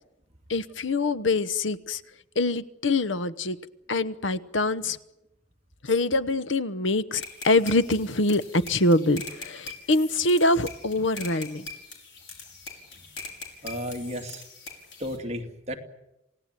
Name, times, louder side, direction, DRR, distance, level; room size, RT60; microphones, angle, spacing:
voice 1, 0.5-2.0 2.3-3.6 3.9-5.0 5.8-11.7, left 2 dB, 90° left, 14 dB, 1.1 m, -24 dB
sound 1, 7.2-15.2, left 3 dB, 70° left, 5.8 m, -42 dB
voice 2, 13.6-14.4 15.0-15.8, equal, 35° right, 2 dB, 2.6 m, -33 dB
28.0 x 18.0 x 9.1 m, 0.93 s
head